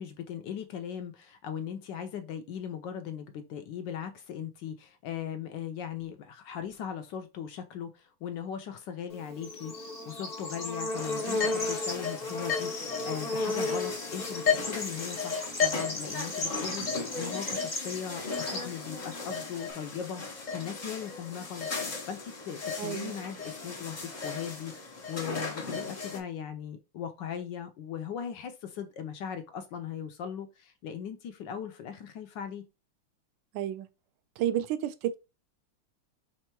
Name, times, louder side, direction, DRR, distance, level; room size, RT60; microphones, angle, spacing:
voice 1, 0.0-32.6, left 8 dB, 75° left, 1.1 m, -39 dB
Bird / Insect, 9.1-19.7, left 2 dB, 30° left, 0.8 m, -35 dB
sound 1, 10.9-26.2, left 5 dB, 55° left, 0.5 m, -35 dB
voice 2, 22.8-23.2 33.5-33.9 34.4-35.2, right 11 dB, 75° right, 1.1 m, -31 dB
3.6 x 3.2 x 4.4 m
omnidirectional pair, 2.4 m